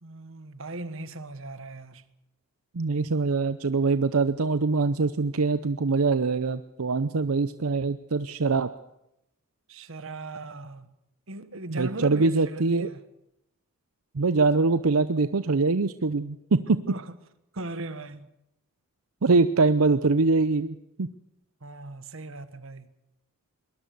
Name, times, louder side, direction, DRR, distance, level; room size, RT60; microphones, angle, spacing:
voice 1, 0.0-2.0 9.7-10.9 11.3-13.0 16.9-17.2 17.5-18.3 21.6-22.9, right 2 dB, 65° right, 1.4 m, -38 dB
voice 2, 2.7-8.7 11.7-12.9 14.1-16.8 19.2-21.1, right 3 dB, 90° right, 0.7 m, -23 dB
22.0 x 20.0 x 6.8 m
head